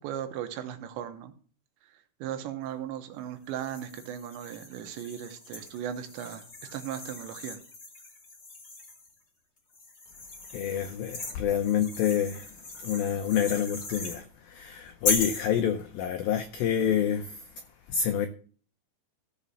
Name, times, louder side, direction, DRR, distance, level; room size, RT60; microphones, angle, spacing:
voice 1, 0.0-1.3 2.2-6.5 6.7-7.6, right 10 dB, 80° right, 3.3 m, -37 dB
sound 1, 3.5-9.1 9.7-14.2 15.0-15.5, left 3 dB, 30° left, 1.9 m, -38 dB
voice 2, 10.5-17.6 17.9-18.3, left 9 dB, 85° left, 2.0 m, -28 dB
14.5 x 5.1 x 7.0 m
omnidirectional pair, 5.2 m